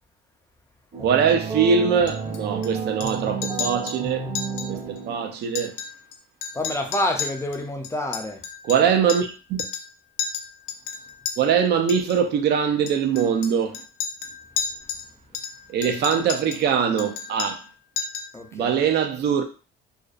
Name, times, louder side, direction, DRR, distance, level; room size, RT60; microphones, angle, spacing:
sound 1, 0.9-5.5, right 5 dB, 30° right, 0.9 m, -31 dB
voice 1, 1.0-4.3 4.7-5.7 8.6-9.6 11.4-13.8 15.7-17.6 18.5-19.4, right 7 dB, 55° right, 0.5 m, -22 dB
Chink clink, 2.1-2.7 3.0-3.2 3.4-4.0 4.4-4.7 5.0-5.1 5.4-6.2 6.4-9.3 9.6-9.9 10.2-11.4 11.9-12.2 12.9-15.1 15.3-16.7 17.0-17.7 18.0-18.4, left 7 dB, 85° left, 0.4 m, -32 dB
voice 2, 6.5-8.4 15.8-15.9 18.3-18.8, left 1 dB, 15° left, 0.4 m, -28 dB
2.5 x 2.0 x 2.4 m
cardioid pair, 105°, 21 cm